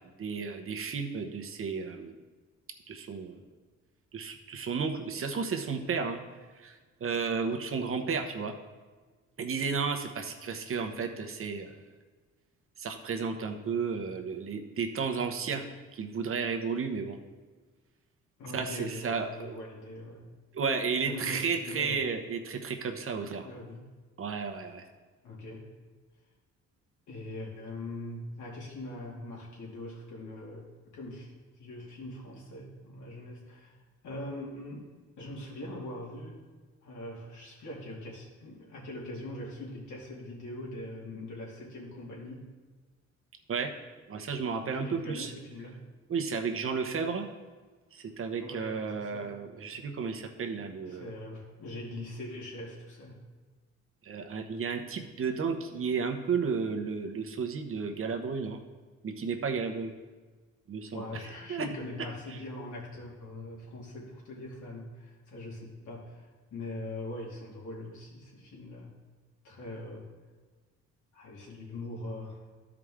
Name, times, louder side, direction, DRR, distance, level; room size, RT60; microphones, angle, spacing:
voice 1, 0.2-2.1 2.9-3.4 4.1-6.2 6.6-8.5 9.4-11.7 12.8-17.2 18.5-19.6 20.5-23.5 24.2-24.8 43.5-43.7 44.1-45.3 46.1-47.3 47.9-51.1 54.0-58.6 59.0-59.9 60.7-61.0 61.5-61.7, right 5 dB, 45° right, 5 dB, 1.0 m, -33 dB
voice 2, 18.4-20.3 21.0-22.0 23.4-23.9 25.2-25.7 27.1-34.9 35.2-36.4 36.8-42.5 44.7-45.9 48.4-49.4 50.9-53.2 60.9-68.9 69.4-70.1 71.1-72.5, left 1 dB, 75° left, -3 dB, 2.4 m, -42 dB
12.5 x 4.9 x 3.7 m, 1.4 s
cardioid pair, 90°, 30 cm